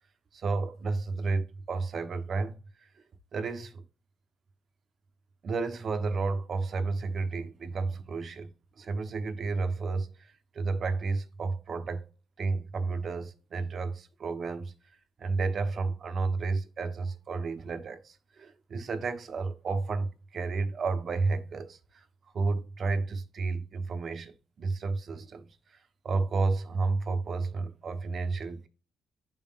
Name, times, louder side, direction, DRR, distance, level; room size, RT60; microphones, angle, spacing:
voice 1, 0.3-2.9 3.3-3.8 5.4-8.5 8.8-12.0 12.4-14.7 15.2-22.0 22.3-28.7, right 4 dB, 50° right, 1.0 m, -32 dB
11.0 x 3.7 x 2.5 m
cardioid pair, 90°, 0 cm